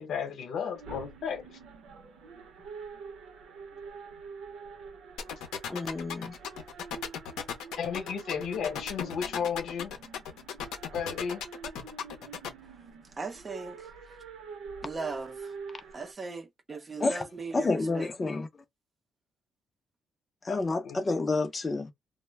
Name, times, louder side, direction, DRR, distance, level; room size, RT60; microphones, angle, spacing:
voice 1, 0.0-1.6 5.7-5.8 7.8-10.0 10.9-11.4 20.5-21.0, left 7 dB, 70° left, 1.0 m, -34 dB
sound 1, 0.7-16.1, right 5 dB, 80° right, 0.7 m, -46 dB
sound 2, 5.2-12.5, left 8 dB, 90° left, 0.7 m, -36 dB
voice 2, 5.7-6.4 17.0-17.2 17.5-18.5 20.4-21.9, left 3 dB, 30° left, 0.6 m, -29 dB
voice 3, 13.2-14.2 14.8-15.5 15.9-18.4, right 4 dB, 30° right, 0.5 m, -39 dB
2.1 x 2.1 x 3.2 m
cardioid pair, 90°, 0 cm